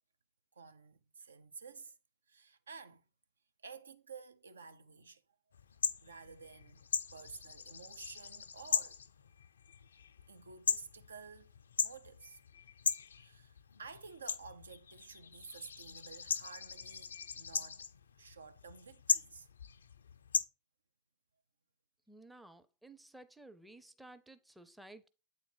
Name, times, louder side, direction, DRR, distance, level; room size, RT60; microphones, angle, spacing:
voice 1, 0.5-1.9 2.3-3.0 3.6-5.2 6.0-6.8 7.1-9.0 10.3-11.5 11.8-12.4 13.2-17.9 18.2-19.5, right 5 dB, 70° right, 0.5 m, -52 dB
sound 1, 5.5-20.4, left 6 dB, 70° left, 0.4 m, -39 dB
voice 2, 22.1-25.1, right 2 dB, 5° right, 0.5 m, -55 dB
8.3 x 3.9 x 4.3 m
figure-of-eight pair, 90°, 0 cm